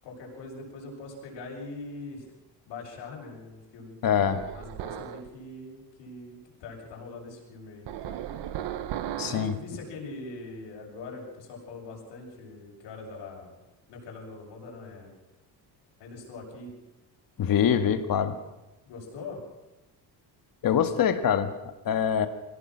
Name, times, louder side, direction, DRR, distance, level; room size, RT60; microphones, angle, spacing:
voice 1, 0.0-2.2 2.7-4.0 4.5-8.2 9.2-13.6 13.9-15.1 16.0-16.7 18.8-19.4, left 3 dB, 85° left, -1 dB, 7.3 m, -42 dB
voice 2, 4.0-4.4 9.2-9.5 17.4-18.4 20.6-22.3, left 8 dB, 55° left, 9 dB, 1.9 m, -24 dB
sound 1, 4.2-5.3 7.9-9.6, right 11 dB, 90° right, 1.4 m, -36 dB
23.0 x 17.5 x 6.4 m, 1.0 s
cardioid pair, 120°, 41 cm